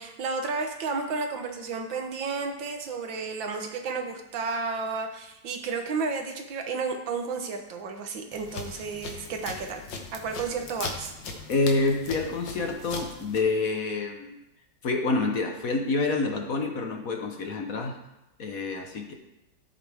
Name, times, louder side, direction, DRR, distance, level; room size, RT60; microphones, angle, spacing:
voice 1, 0.0-9.8 10.1-11.1, right 4 dB, 80° right, 5 dB, 1.8 m, -32 dB
sound 1, 8.3-13.4, left 4 dB, 70° left, 1.7 m, -39 dB
voice 2, 11.5-14.4 14.8-18.0 18.4-19.1, left 3 dB, 55° left, 3 dB, 1.3 m, -27 dB
13.0 x 8.3 x 3.5 m, 0.93 s
omnidirectional pair, 2.0 m